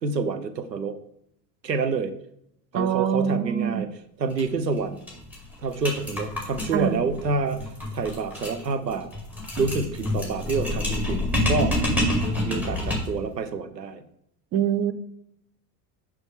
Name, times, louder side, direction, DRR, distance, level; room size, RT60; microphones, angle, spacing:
voice 1, 0.0-1.0 1.6-2.1 2.7-3.9 4.2-5.0 5.6-7.6 7.9-9.1 9.6-11.8 12.4-14.0, right 4 dB, 85° right, 9 dB, 0.8 m, -27 dB
voice 2, 2.7-3.8 6.7-7.0 14.5-14.9, right 9 dB, 30° right, 12 dB, 0.6 m, -24 dB
sound 1, 4.3-4.4 4.7-4.8 5.1-13.2, left 1 dB, 5° right, 2.3 m, -28 dB
6.3 x 6.0 x 3.6 m, 0.76 s
figure-of-eight pair, 75°, 49 cm